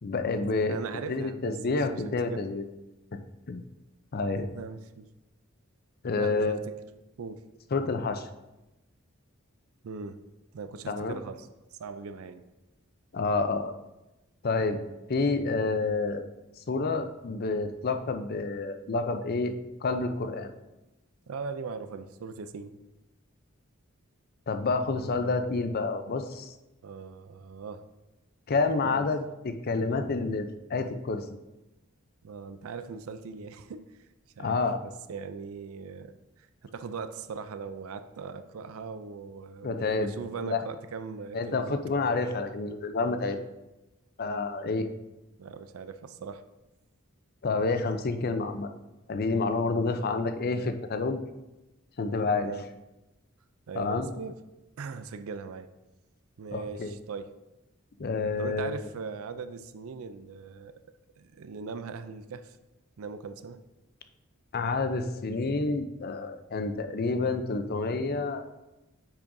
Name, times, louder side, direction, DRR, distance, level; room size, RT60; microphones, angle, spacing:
voice 1, 0.0-0.8 1.1-2.6 3.5-3.6 4.1-4.5 6.0-6.6 7.7-8.3 10.9-11.2 13.1-13.7 14.4-14.8 15.1-16.2 16.7-19.5 19.8-20.5 24.5-26.5 28.5-31.2 34.4-34.8 39.6-40.1 40.4-40.6 41.3-43.4 44.2-44.9 47.4-48.7 49.1-51.2 52.0-52.5 53.7-54.1 56.5-56.9 58.0-58.8 64.5-68.4, left 3 dB, 45° left, 8 dB, 0.5 m, -29 dB
voice 2, 0.6-2.0 2.3-2.5 4.4-5.1 6.2-6.8 7.2-7.5 9.8-10.2 10.5-12.5 14.6-14.8 21.3-22.7 26.8-27.8 28.8-29.1 32.2-34.0 34.4-41.9 45.4-46.4 49.7-49.9 52.4-52.6 53.7-54.4 54.8-55.7 56.4-57.3 58.4-60.7 61.2-62.6 63.0-63.6, right 5 dB, 75° right, 11 dB, 0.4 m, -40 dB
8.4 x 6.0 x 2.6 m, 1.0 s
head